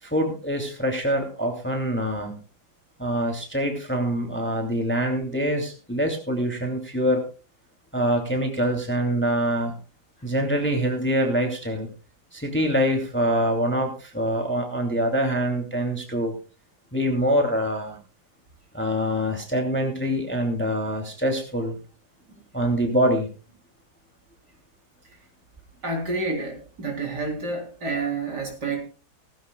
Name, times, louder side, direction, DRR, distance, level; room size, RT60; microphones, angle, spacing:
voice 1, 0.0-2.4 3.0-7.2 7.9-9.7 10.2-11.9 12.3-16.3 16.9-18.0 18.7-21.8 22.5-23.3, equal, 5° left, 3 dB, 2.6 m, -25 dB
voice 2, 25.8-28.8, right 3 dB, 50° right, 2 dB, 4.2 m, -29 dB
17.5 x 15.5 x 2.3 m, 0.34 s
omnidirectional pair, 2.3 m